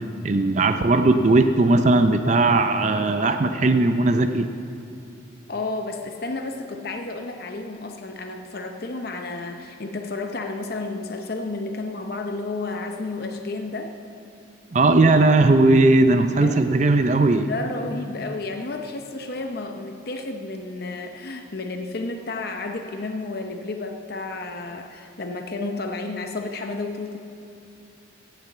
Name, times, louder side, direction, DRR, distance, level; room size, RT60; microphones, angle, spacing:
voice 1, 0.2-4.5 14.7-17.5, right 2 dB, 35° right, 8 dB, 0.4 m, -18 dB
voice 2, 5.5-13.9 16.4-16.6 17.4-27.2, left 3 dB, 50° left, 5 dB, 0.7 m, -31 dB
16.5 x 6.8 x 7.9 m, 2.7 s
head